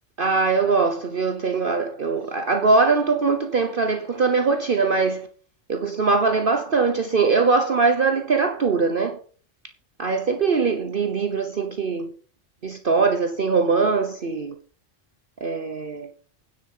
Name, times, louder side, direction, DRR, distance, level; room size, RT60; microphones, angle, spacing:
voice 1, 0.2-5.3 5.7-9.2 10.0-12.1 12.6-14.5 15.4-16.1, right 4 dB, 45° right, 1.2 m, -21 dB
9.8 x 7.7 x 6.6 m
omnidirectional pair, 1.3 m